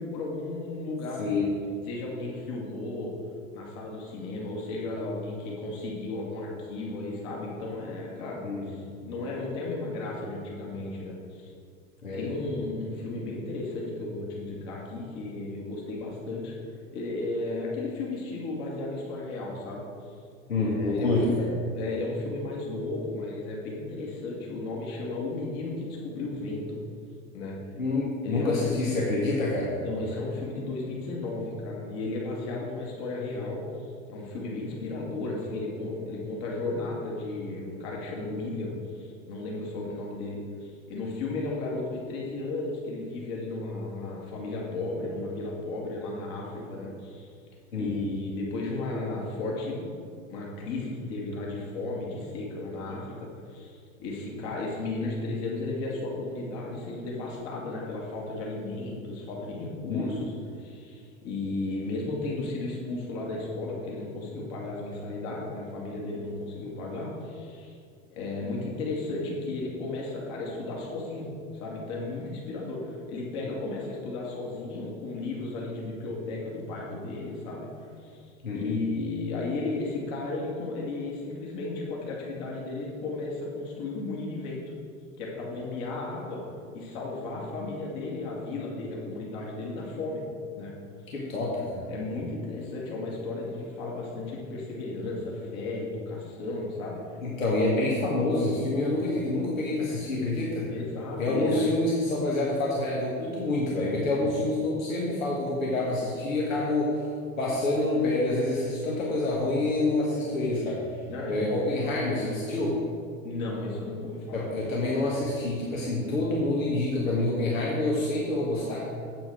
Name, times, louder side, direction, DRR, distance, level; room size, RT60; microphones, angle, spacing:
voice 1, 0.0-1.4 1.9-3.1 3.5-11.5 12.1-16.6 16.9-19.8 20.6-21.4 21.8-26.8 27.3-27.6 28.2-28.8 29.6-33.7 34.1-47.3 47.7-49.9 50.3-60.3 60.6-67.8 68.1-77.7 78.0-78.3 78.5-84.6 85.2-86.4 86.7-90.2 90.6-90.7 91.9-97.0 97.3-97.4 97.9-98.0 100.7-101.6 104.2-104.5 111.1-111.9 113.2-114.5, left 2 dB, 50° left, -3 dB, 2.3 m, -34 dB
voice 2, 8.4-8.8 12.0-12.2 20.5-21.5 27.8-29.7 47.7-47.9 59.9-60.1 78.4-78.8 91.1-91.9 97.2-100.6 101.2-106.9 107.4-110.8 111.3-112.8 114.3-118.8, left 2 dB, 75° left, -4 dB, 1.6 m, -27 dB
8.0 x 7.8 x 4.9 m, 2.3 s
figure-of-eight pair, 80°, 41 cm